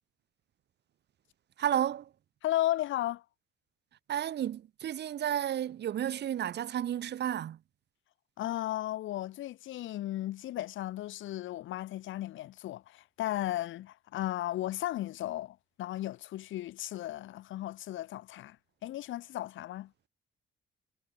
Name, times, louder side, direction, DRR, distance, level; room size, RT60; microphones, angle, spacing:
voice 1, 1.6-2.1 4.1-7.6, right 10 dB, 60° right, 0.9 m, -32 dB
voice 2, 2.4-3.2 8.4-18.6 18.8-19.9, left 14 dB, 75° left, 0.9 m, -35 dB
cardioid pair, 90°, 20 cm